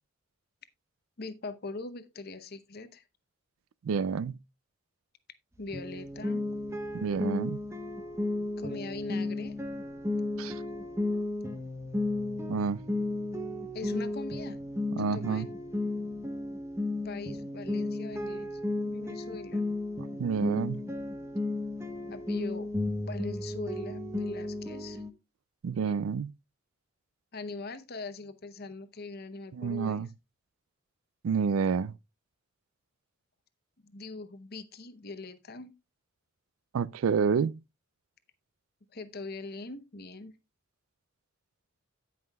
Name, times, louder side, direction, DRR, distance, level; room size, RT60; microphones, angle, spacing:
voice 1, 1.2-3.0 5.6-6.5 8.6-9.6 13.7-14.6 15.0-15.4 17.0-19.7 22.1-22.7 23.0-25.0 25.8-25.9 27.3-30.0 33.8-35.7 38.9-40.3, left 3 dB, 50° left, 0.8 m, -41 dB
voice 2, 3.8-4.4 6.9-7.6 10.4-10.6 12.5-12.8 15.0-15.5 20.2-20.8 25.6-26.3 29.5-30.1 31.2-31.9 36.7-37.6, right 6 dB, 90° right, 0.4 m, -29 dB
sound 1, 5.7-25.1, left 2 dB, 15° right, 1.0 m, -34 dB
17.0 x 5.7 x 2.3 m
head